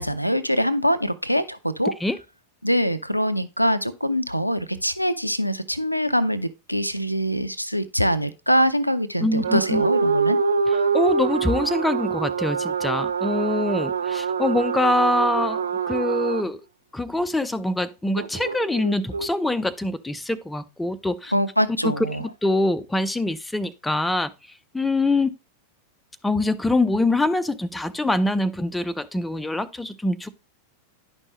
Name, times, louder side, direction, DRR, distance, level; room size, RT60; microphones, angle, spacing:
voice 1, 0.0-1.9 2.6-10.4 21.3-22.2, equal, 90° left, 0.5 m, -23 dB
voice 2, 9.2-9.8 10.9-16.6 16.9-21.3 21.8-21.9 22.2-24.3 24.7-25.3 26.2-30.3, left 2 dB, 5° left, 0.5 m, -24 dB
sound 1, 9.4-16.4 18.2-19.3, right 5 dB, 70° right, 0.4 m, -25 dB
10.5 x 5.4 x 3.0 m
figure-of-eight pair, 90°, 0 cm